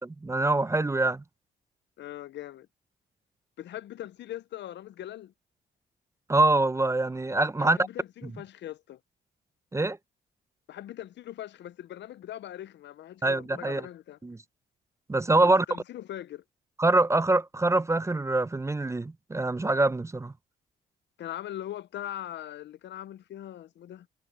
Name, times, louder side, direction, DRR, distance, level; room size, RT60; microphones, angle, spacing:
voice 1, 0.2-1.2 6.3-7.8 9.7-10.0 13.2-13.9 14.2-14.4 15.1-15.6 16.8-20.3, right 2 dB, 15° right, 0.6 m, -24 dB
voice 2, 2.0-2.7 3.6-5.3 7.6-9.0 10.7-14.2 15.4-16.4 21.2-24.1, left 12 dB, 65° left, 0.6 m, -41 dB
cardioid pair, 90°, 20 cm